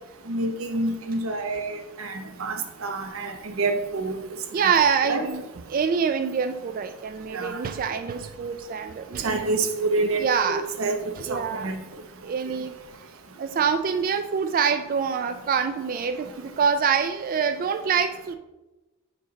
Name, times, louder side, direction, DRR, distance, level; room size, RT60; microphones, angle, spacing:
voice 1, 0.3-4.2 4.6-4.7 5.1-5.3 7.3-7.6 9.2-11.0 11.3-11.8, right 3 dB, 90° right, 0.8 m, -27 dB
voice 2, 4.5-5.4 5.7-9.5 10.2-10.6 11.2-11.7 12.2-12.8 13.4-18.3, right 6 dB, 45° right, 0.3 m, -25 dB
7.2 x 5.4 x 4.0 m
head